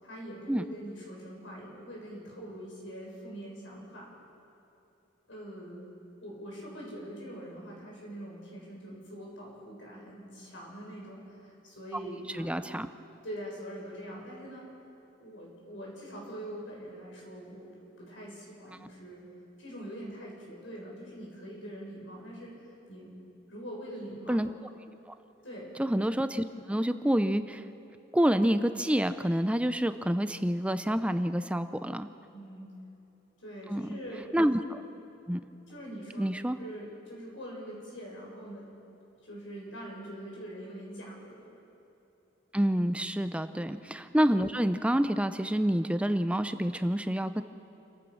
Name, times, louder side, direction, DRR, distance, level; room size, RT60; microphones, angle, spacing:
voice 1, 0.0-4.1 5.3-5.8 6.2-12.5 13.2-14.7 15.2-17.7 18.0-19.2 19.6-22.5 22.9-23.1 23.5-24.5 25.4-25.8 32.3-32.7 33.4-34.3 35.7-36.3 36.6-38.7 39.2-41.5, equal, 90° left, -3 dB, 6.7 m, -43 dB
voice 2, 12.4-12.9 24.3-24.5 25.8-27.6 28.1-32.1 33.7-34.0 34.3-34.8 35.3-35.4 36.2-36.6 42.5-47.4, equal, 5° right, 10 dB, 0.5 m, -28 dB
28.5 x 15.0 x 6.2 m, 3.0 s
head